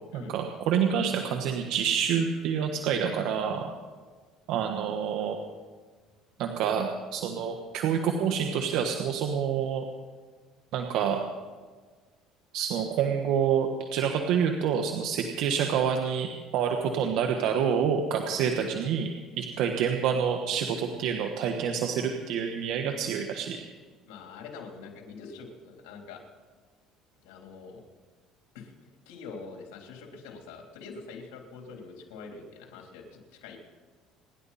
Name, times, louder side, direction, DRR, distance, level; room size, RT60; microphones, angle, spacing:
voice 1, 0.1-3.7 4.5-5.4 6.4-9.8 10.7-11.2 12.5-19.1 19.4-23.6, right 7 dB, 70° right, 3 dB, 1.4 m, -27 dB
voice 2, 24.1-26.2 27.2-27.8 28.5-28.7 29.1-33.6, left 4 dB, 90° left, 1 dB, 3.6 m, -44 dB
27.0 x 11.0 x 4.2 m, 1.4 s
cardioid pair, 110°, 0 cm